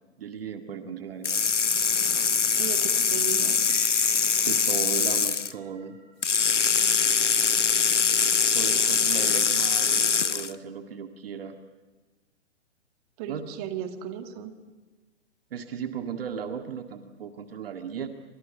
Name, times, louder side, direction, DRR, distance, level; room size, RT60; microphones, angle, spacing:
voice 1, 0.2-1.4 4.5-6.0 8.5-11.6 13.3-13.4 15.5-18.1, right 7 dB, 50° right, 6 dB, 2.0 m, -36 dB
sound 1, 1.2-5.5 6.2-10.5, left 6 dB, 75° left, 1.1 m, -23 dB
voice 2, 2.6-3.8 13.2-14.5, right 9 dB, 30° right, 7 dB, 2.3 m, -36 dB
sound 2, 2.9-7.5, right 2 dB, 15° right, 7.5 m, -54 dB
28.0 x 26.0 x 8.0 m, 1.2 s
figure-of-eight pair, 115°, 36 cm